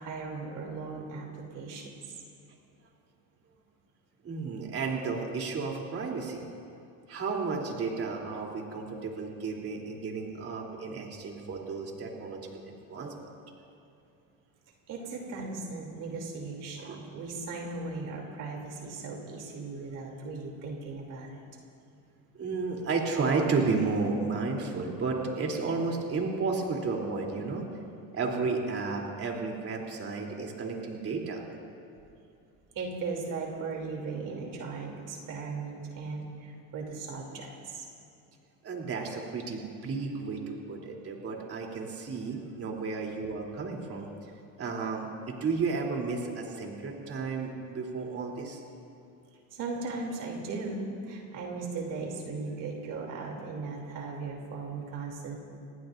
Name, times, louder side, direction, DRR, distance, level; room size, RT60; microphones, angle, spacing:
voice 1, 0.0-2.0 14.9-21.4 32.7-37.8 49.5-55.4, right 4 dB, 55° right, 0 dB, 3.1 m, -37 dB
voice 2, 4.2-6.5 7.1-13.1 16.8-17.1 22.3-27.6 28.1-31.4 38.6-44.1 44.6-48.6, right 4 dB, 40° right, 0 dB, 3.3 m, -32 dB
27.0 x 19.0 x 2.6 m, 2.6 s
cardioid pair, 115°, 37 cm